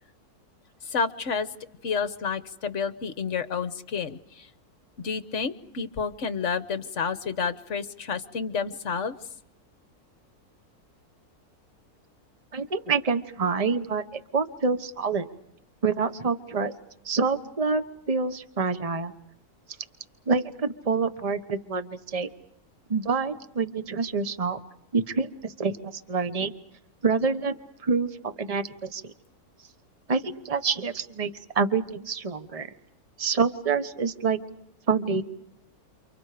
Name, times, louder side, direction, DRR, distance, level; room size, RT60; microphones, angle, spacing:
voice 1, 0.9-1.5 1.8-4.5 5.0-9.2, left 5 dB, 50° left, 11 dB, 1.5 m, -30 dB
voice 2, 12.5-15.3 15.8-16.7 17.0-19.1 20.3-22.3 22.9-24.6 24.9-26.5 27.0-27.6 27.8-29.0 30.1-32.7 33.2-34.4 34.9-35.2, right 5 dB, 25° right, 10 dB, 1.2 m, -27 dB
30.0 x 29.0 x 5.1 m, 0.79 s
omnidirectional pair, 1.6 m